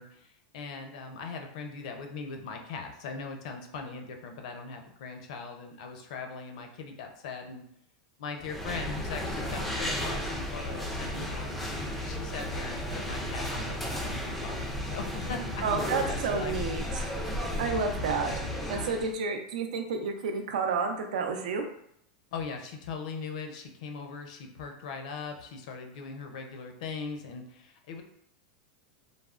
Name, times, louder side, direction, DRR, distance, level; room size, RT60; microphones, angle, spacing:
voice 1, 0.0-7.6 8.2-16.5 22.3-28.0, left 5 dB, 65° left, 4 dB, 0.5 m, -40 dB
sound 1, 8.4-19.1, left 1 dB, 5° left, 0.3 m, -34 dB
voice 2, 15.6-17.1 17.6-18.3 18.7-21.6, right 5 dB, 80° right, 4 dB, 0.5 m, -30 dB
3.4 x 2.0 x 2.3 m, 0.73 s
supercardioid pair, 155°, 4 cm